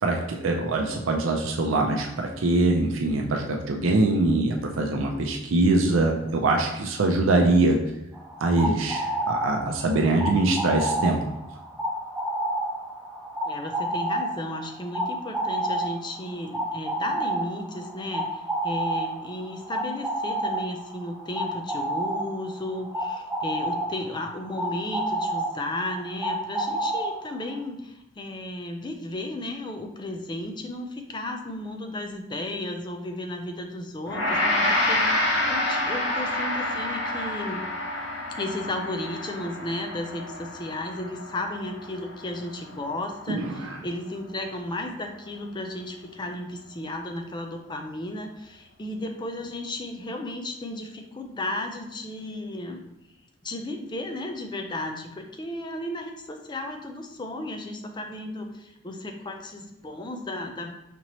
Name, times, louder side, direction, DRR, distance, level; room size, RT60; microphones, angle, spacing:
voice 1, 0.0-7.8 8.4-11.3 43.3-43.8, right 2 dB, 85° right, 1 dB, 0.5 m, -23 dB
sound 1, 8.1-27.6, right 1 dB, 5° right, 0.8 m, -30 dB
voice 2, 13.5-37.7 38.4-52.8 53.4-60.7, left 1 dB, 25° left, 4 dB, 0.5 m, -34 dB
Gong, 34.1-43.4, left 1 dB, 65° left, 0.9 m, -28 dB
5.2 x 2.9 x 3.0 m, 0.89 s
head